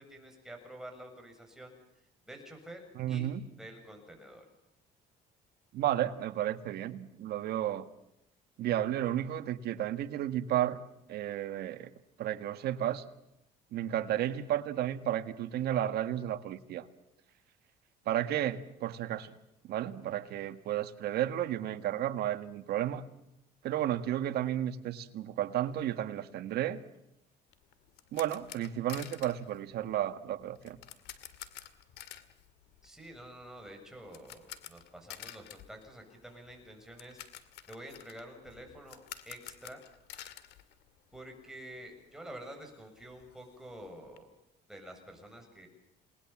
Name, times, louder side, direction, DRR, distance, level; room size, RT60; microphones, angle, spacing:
voice 1, 0.0-1.7 2.3-3.3 3.6-4.4 32.8-37.2 37.7-39.0 39.3-39.8 41.1-44.3 44.7-45.7, right 1 dB, 5° right, 2 dB, 7.2 m, -48 dB
voice 2, 3.0-3.4 5.7-7.9 8.6-10.8 11.1-11.9 12.2-13.0 13.7-16.9 18.1-19.3 19.6-23.0 23.6-26.8 28.1-30.8, right 12 dB, 75° right, 10 dB, 1.7 m, -32 dB
sound 1, 27.5-41.5 41.7-41.9 42.3-42.4 42.6-44.2, left 12 dB, 85° left, 2.0 m, -50 dB
28.5 x 20.0 x 7.4 m, 0.87 s
cardioid pair, 110°, 17 cm